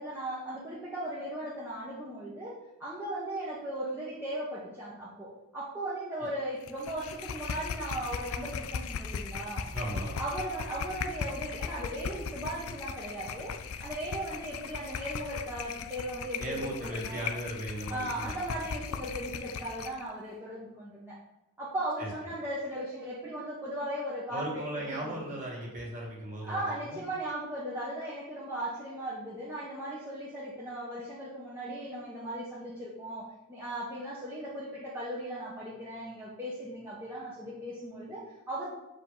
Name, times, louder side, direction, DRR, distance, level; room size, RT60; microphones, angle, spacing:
voice 1, 0.0-9.6 10.2-13.5 13.8-17.2 17.9-21.2 21.6-25.2 26.4-38.7, right 1 dB, 10° right, -9 dB, 1.1 m, -37 dB
sound 1, 6.6-20.0, left 6 dB, 90° left, 0.5 m, -38 dB
voice 2, 9.7-10.2 16.4-18.4 22.0-22.1 24.3-27.0, right 1 dB, 35° right, -3 dB, 2.1 m, -37 dB
7.7 x 5.0 x 3.9 m, 0.92 s
head